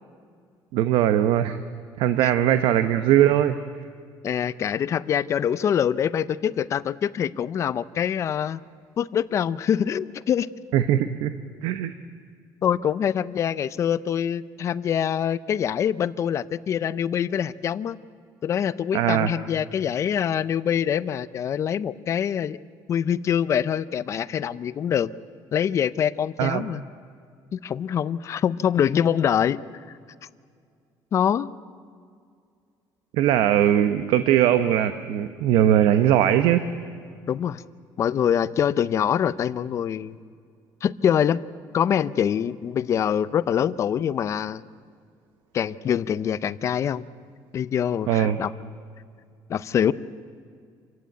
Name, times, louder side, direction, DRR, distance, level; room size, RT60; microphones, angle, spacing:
voice 1, 0.7-1.6 2.0-3.6 10.7-11.3 11.6-11.9 18.9-19.3 26.4-26.6 33.1-36.6 48.1-48.4, right 11 dB, 80° right, 10 dB, 0.9 m, -20 dB
voice 2, 4.2-8.6 9.0-10.5 12.6-18.0 18.4-22.6 22.9-25.1 25.5-26.8 27.5-29.6 31.1-31.5 37.3-37.6 38.0-40.2 40.8-41.4 41.7-44.6 45.5-47.0 47.5-48.5 49.5-49.9, left 9 dB, 35° left, 16 dB, 0.6 m, -24 dB
27.5 x 15.5 x 9.2 m, 2.2 s
cardioid pair, 160°, 8 cm